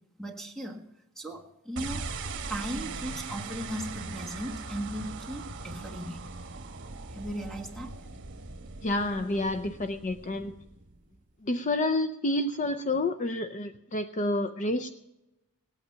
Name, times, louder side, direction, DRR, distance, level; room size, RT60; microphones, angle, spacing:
voice 1, 0.2-0.8 1.2-2.1 2.5-6.3 7.1-8.0, equal, 5° left, 2 dB, 1.6 m, -37 dB
sound 1, 1.8-11.1, right 3 dB, 55° right, 1.2 m, -40 dB
voice 2, 8.8-10.5 11.4-14.9, left 2 dB, 35° left, 9 dB, 0.5 m, -29 dB
18.5 x 8.8 x 5.7 m, 0.92 s
head